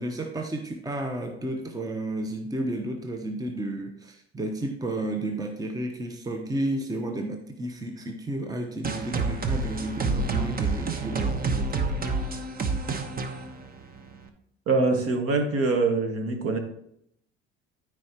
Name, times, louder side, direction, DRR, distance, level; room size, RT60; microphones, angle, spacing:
voice 1, 0.0-12.0, right 1 dB, 10° right, 5 dB, 0.9 m, -32 dB
sound 1, 8.8-14.3, right 3 dB, 25° right, 1.1 m, -28 dB
voice 2, 14.7-16.6, right 3 dB, 45° right, 5 dB, 1.7 m, -24 dB
13.5 x 4.6 x 3.0 m, 0.73 s
figure-of-eight pair, 65°, 32 cm